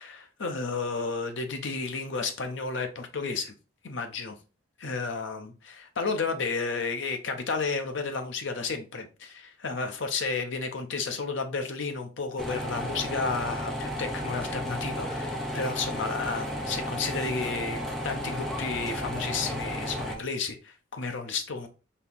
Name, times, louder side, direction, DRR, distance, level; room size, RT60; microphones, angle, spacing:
voice 1, 0.0-3.5 3.8-4.4 4.8-21.7, left 4 dB, 65° left, 0.7 m, -32 dB
sound 1, 12.4-20.2, equal, ahead, 0.6 m, -33 dB
4.3 x 2.8 x 3.6 m
head